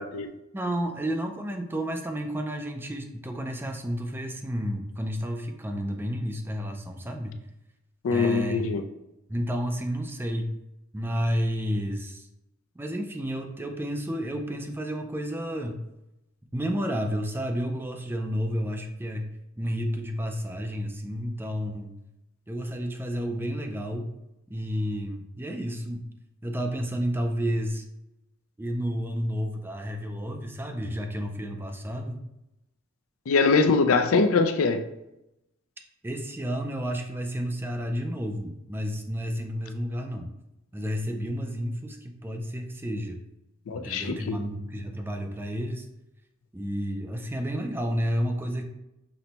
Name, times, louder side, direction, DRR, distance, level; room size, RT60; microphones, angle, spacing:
voice 1, 0.0-0.4 8.0-8.8 33.3-34.9 43.7-44.4, left 4 dB, 75° left, 0.4 m, -23 dB
voice 2, 0.5-7.4 8.1-8.7 9.3-10.6 10.9-12.3 12.8-15.8 16.5-19.3 19.6-21.9 22.5-24.1 24.5-26.1 26.4-27.8 28.6-32.2 36.0-40.3 40.7-43.2 43.7-45.9 46.5-48.7, equal, 10° right, 0.4 m, -31 dB
5.9 x 2.1 x 4.0 m
head